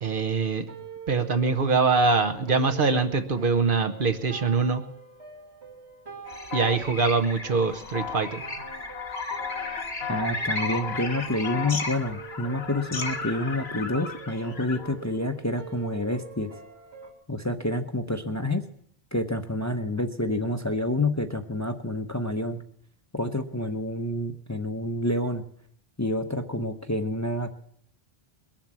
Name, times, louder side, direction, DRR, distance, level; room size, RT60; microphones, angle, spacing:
voice 1, 0.0-0.6 1.1-4.8 6.5-8.5, right 4 dB, 55° right, 8 dB, 1.1 m, -23 dB
sound 1, 0.7-17.1, right 4 dB, 85° right, 2.7 m, -45 dB
sound 2, 6.3-14.9, left 4 dB, 80° left, 1.6 m, -34 dB
voice 2, 10.1-16.5 17.3-18.6 19.1-22.6 23.1-25.4 26.0-27.5, left 1 dB, 20° left, 7 dB, 0.7 m, -28 dB
21.5 x 7.4 x 7.4 m, 0.67 s
omnidirectional pair, 1.1 m